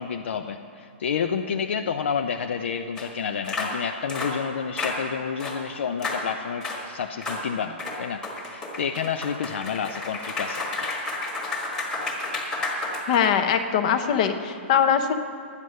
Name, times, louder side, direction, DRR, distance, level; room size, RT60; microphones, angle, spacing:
voice 1, 0.0-10.9, left 6 dB, 65° left, 6 dB, 0.5 m, -30 dB
sound 1, 3.0-3.1 3.4-3.7 4.1-4.4 4.8-5.0 5.4-5.6 6.0-6.2 6.6-6.8 7.2-7.4 7.8-13.5, left 2 dB, 10° left, 1.5 m, -31 dB
voice 2, 13.1-15.2, left 8 dB, 35° left, 8 dB, 0.8 m, -22 dB
12.5 x 9.6 x 6.4 m, 2.2 s
hypercardioid pair, 170°, 7 cm